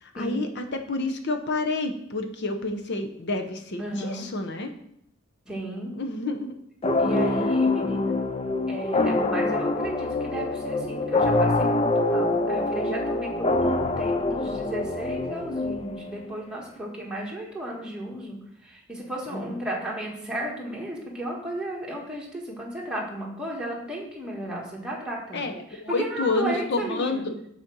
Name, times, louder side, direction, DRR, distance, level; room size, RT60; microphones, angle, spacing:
voice 1, 0.0-4.7 5.9-6.5 19.3-19.6 25.3-27.3, left 2 dB, 55° left, 5 dB, 0.9 m, -29 dB
voice 2, 3.8-4.3 5.4-5.9 7.0-8.1 8.7-18.4 18.6-27.2, right 1 dB, 5° right, -3 dB, 1.6 m, -34 dB
sound 1, 6.8-16.3, left 2 dB, 30° left, 0.5 m, -25 dB
6.4 x 4.3 x 6.1 m, 0.73 s
head